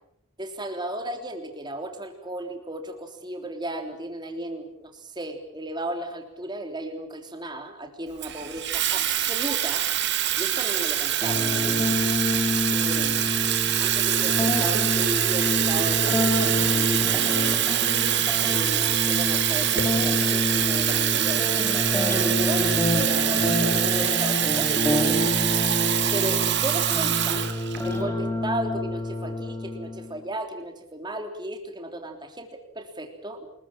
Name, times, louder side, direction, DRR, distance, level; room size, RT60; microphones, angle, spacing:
voice 1, 0.4-9.8 10.2-12.1 12.7-13.3 13.8-17.9 18.5-25.2 26.1-27.5 27.8-33.5, right 1 dB, 20° right, 5 dB, 3.5 m, -35 dB
Water tap faucet / Fill (with liquid), 8.2-28.0, right 11 dB, 50° right, 2.3 m, -24 dB
sound 1, 11.2-30.2, left 1 dB, 10° left, 3.8 m, -27 dB
29.0 x 21.5 x 7.5 m, 0.72 s
head